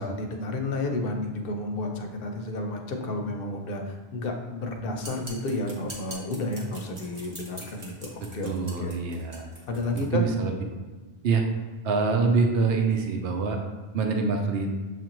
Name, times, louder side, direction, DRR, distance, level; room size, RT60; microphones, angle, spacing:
voice 1, 0.0-8.5 8.8-9.0 9.7-10.2, left 2 dB, 65° left, 3 dB, 0.8 m, -31 dB
sound 1, 5.0-10.1, right 1 dB, 30° right, 0.8 m, -43 dB
voice 2, 8.4-9.5 9.9-10.5 11.2-11.4 11.8-13.6 13.9-14.7, right 4 dB, 75° right, 3 dB, 0.8 m, -25 dB
7.1 x 2.5 x 2.9 m, 1.3 s
omnidirectional pair, 1.0 m